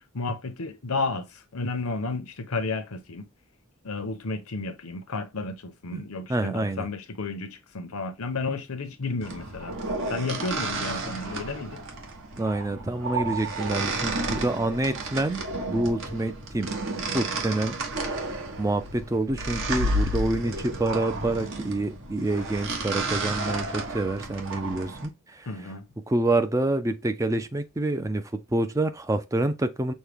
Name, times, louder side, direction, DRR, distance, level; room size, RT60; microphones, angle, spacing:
voice 1, 0.1-3.3 3.8-9.7 10.1-11.7 25.5-25.9, left 3 dB, 75° left, 0.8 m, -32 dB
voice 2, 6.3-6.9 12.4-15.4 15.7-16.7 17.1-17.8 18.6-25.7 26.1-28.2 28.5-29.9, right 2 dB, 15° right, 0.4 m, -27 dB
sound 1, 9.2-25.1, right 2 dB, 60° right, 1.2 m, -32 dB
6.2 x 2.2 x 3.4 m
head